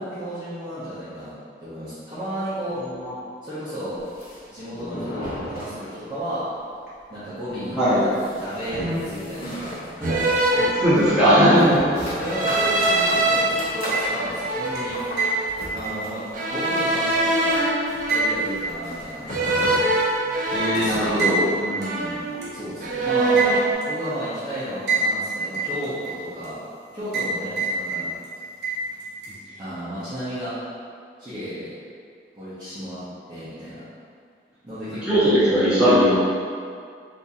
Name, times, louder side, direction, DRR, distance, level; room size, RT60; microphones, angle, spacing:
voice 1, 0.0-1.3 1.6-2.8 3.4-4.0 4.5-6.5 7.1-8.1 8.4-10.3 11.9-15.0 15.7-17.6 18.1-19.8 20.7-21.2 21.6-22.2 22.5-23.4 23.9-26.6 26.9-28.1 29.5-30.5 31.2-31.7 32.3-33.0 33.3-33.8 34.6-35.5, equal, 25° right, -15 dB, 0.7 m, -33 dB
sound 1, 3.9-6.3 6.6-6.7 7.0-7.1 7.5-21.2, left 1 dB, 50° left, 0.8 m, -36 dB
sound 2, 7.6-7.8 8.7-9.2 10.0-11.4 12.2-13.4 14.0-15.5 16.3-18.7 19.3-21.5 21.8-22.5 22.8-23.7, right 2 dB, 45° right, 0.4 m, -24 dB
voice 2, 10.5-12.2 20.5-21.4 22.4-22.5 29.3-29.4 35.0-36.2, equal, 5° right, -14 dB, 1.1 m, -19 dB
sound 3, 13.9-14.4 14.8-17.6 18.1-19.4 19.8-19.9 21.2-21.4 21.8-21.9 22.4-22.5 23.4-23.9 24.9-25.3 25.5-26.5 27.1-27.3 27.6-28.3 28.6-29.3, right 3 dB, 70° right, 0.8 m, -26 dB
3.4 x 2.6 x 2.7 m, 2.2 s
head